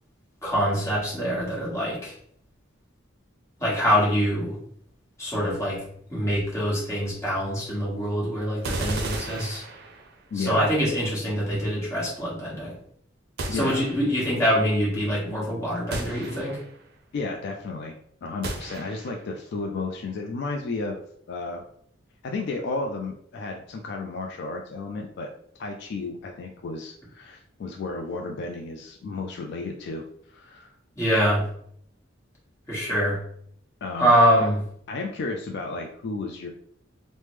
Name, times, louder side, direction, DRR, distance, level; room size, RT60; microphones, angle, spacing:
voice 1, 0.4-2.1 3.6-4.5 5.2-5.8 6.1-9.6 10.4-12.7 13.5-16.6 31.0-31.4 32.7-33.2 34.0-34.6, equal, 15° left, -7 dB, 1.2 m, -24 dB
sound 1, 8.6-10.3 13.4-14.3 15.9-16.8 18.4-19.3, right 2 dB, 55° right, 0.5 m, -34 dB
voice 2, 10.3-10.7 13.5-13.9 17.1-17.9 18.2-21.0 21.3-21.6 22.2-25.3 25.6-30.7 33.8-34.5 34.9-36.5, left 3 dB, 55° left, 2 dB, 0.3 m, -33 dB
3.3 x 2.0 x 3.1 m, 0.68 s
head